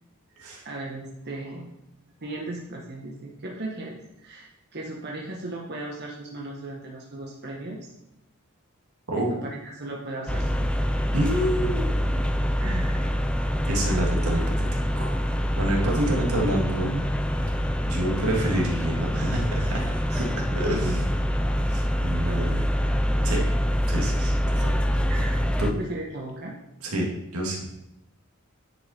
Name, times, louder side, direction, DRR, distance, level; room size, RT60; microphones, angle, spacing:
voice 1, 0.3-1.7 2.2-7.8 9.4-10.7 12.6-13.2 13.7-14.0 20.5-21.1 22.2-22.6 25.1-25.4 25.7-26.5, right 2 dB, 50° right, -2 dB, 1.2 m, -36 dB
sound 1, 10.3-25.7, equal, 5° left, 0.4 m, -25 dB
voice 2, 11.1-12.2 13.7-14.7 15.0-15.2 15.6-17.0 17.8-20.9 21.7-22.7 23.2-23.5 23.9-24.8 25.6-25.7 26.8-27.6, right 1 dB, 80° right, -1 dB, 2.2 m, -28 dB
9.9 x 5.7 x 4.3 m, 0.88 s
head